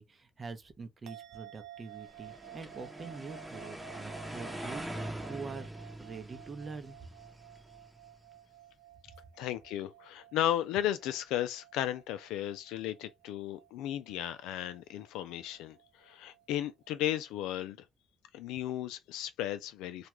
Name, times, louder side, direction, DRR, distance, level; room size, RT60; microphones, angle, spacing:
voice 1, 0.0-5.7 6.0-7.0, right 4 dB, 40° right, 0.7 m, -45 dB
sound 1, 1.1-17.6, right 14 dB, 75° right, 0.3 m, -54 dB
sound 2, 2.1-8.2, right 1 dB, 10° right, 0.8 m, -43 dB
voice 2, 9.4-17.8 18.3-20.1, left 12 dB, 85° left, 0.3 m, -35 dB
2.4 x 2.2 x 3.0 m
supercardioid pair, 65°, 0 cm